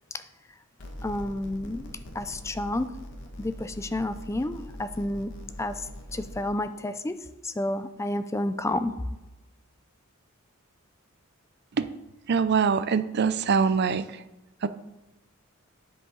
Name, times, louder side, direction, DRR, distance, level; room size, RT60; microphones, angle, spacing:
sound 1, 0.8-6.4, equal, 55° left, 1.4 m, -42 dB
voice 1, 1.0-1.9 2.1-2.9 3.4-5.3 5.6-5.8 6.1-7.2 7.4-8.9, left 1 dB, 15° left, 12 dB, 0.4 m, -30 dB
voice 2, 12.3-14.1 14.6-14.7, right 5 dB, 50° right, 13 dB, 0.5 m, -23 dB
9.8 x 7.5 x 3.9 m, 1.1 s
head